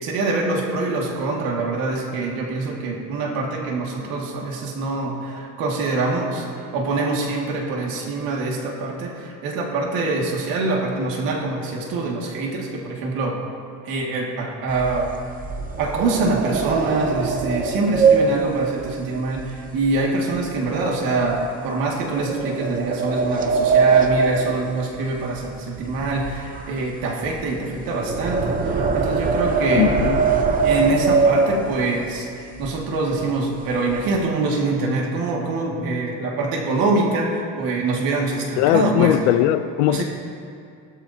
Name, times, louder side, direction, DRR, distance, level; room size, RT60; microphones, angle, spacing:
voice 1, 0.0-13.4 13.9-15.1 15.8-29.9 30.6-32.3 32.6-39.2 39.9-40.0, right 3 dB, 60° right, -2 dB, 2.2 m, -24 dB
sound 1, 14.7-20.1 20.4-20.7 21.2-21.3 22.1-25.5 25.7-32.0 32.6-32.7 33.0-33.2 33.6-34.2, right 4 dB, 20° right, 0.7 m, -22 dB
voice 2, 29.8-30.2 38.6-40.0, left 13 dB, 85° left, 13 dB, 0.7 m, -19 dB
20.0 x 13.0 x 2.8 m, 2.4 s
cardioid pair, 160°, 39 cm